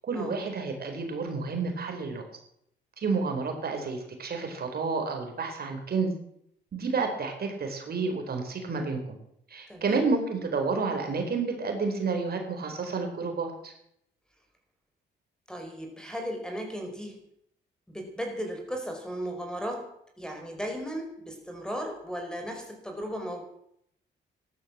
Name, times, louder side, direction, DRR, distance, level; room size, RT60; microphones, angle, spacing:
voice 1, 0.1-2.2 3.0-6.1 6.7-9.0 9.5-13.7, right 4 dB, 50° right, 4 dB, 4.3 m, -30 dB
voice 2, 9.7-10.0 15.5-17.2 17.9-23.4, equal, 5° left, 3 dB, 5.1 m, -36 dB
14.5 x 13.0 x 7.4 m, 0.71 s
cardioid pair, 90°, 20 cm